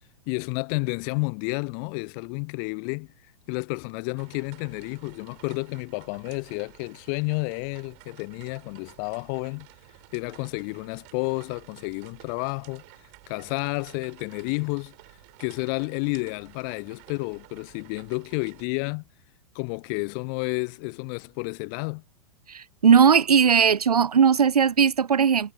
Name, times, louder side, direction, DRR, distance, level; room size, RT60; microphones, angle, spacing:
voice 1, 0.3-3.1 3.5-9.7 10.1-12.8 13.3-14.9 15.4-19.0 19.5-22.0, left 40 dB or more, 30° left, 0.4 m, -31 dB
sound 1, 4.2-18.7, right 37 dB, 40° right, 4.4 m, -52 dB
voice 2, 22.5-25.5, right 7 dB, 85° right, 0.4 m, -18 dB
figure-of-eight pair, 100°, 19 cm